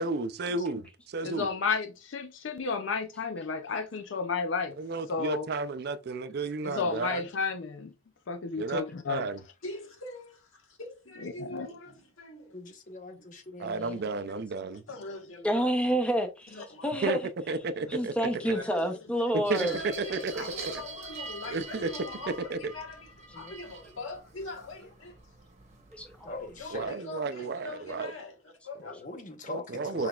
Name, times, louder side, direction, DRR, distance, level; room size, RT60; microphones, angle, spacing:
voice 1, 0.0-1.5 4.8-7.3 8.5-9.4 13.6-14.8 17.0-17.2 17.5-18.1 19.3-20.8 21.5-21.9 22.3-22.7 26.7-28.1 29.5-30.1, right 3 dB, 55° right, 0.4 m, -32 dB
voice 2, 1.2-4.7 5.1-5.5 6.6-7.9 8.3-9.2 11.4-11.7, left 4 dB, 65° left, 0.5 m, -32 dB
voice 3, 9.6-12.6 13.1-13.2 14.7-15.7 16.5-16.9 17.8-17.9 18.3-19.1 19.5-25.2 25.6-25.7 26.6-28.9, left 2 dB, 90° left, 1.4 m, -43 dB
voice 4, 12.5-14.1 18.6-18.8 23.3-23.5 26.2-27.0 28.8-30.1, left 2 dB, 40° left, 0.9 m, -42 dB
voice 5, 15.4-16.6 16.8-17.3 17.9-19.8 25.9-26.3, equal, 5° left, 0.7 m, -28 dB
sound 1, 19.4-26.9, right 3 dB, 35° right, 1.0 m, -44 dB
5.9 x 3.3 x 2.3 m
head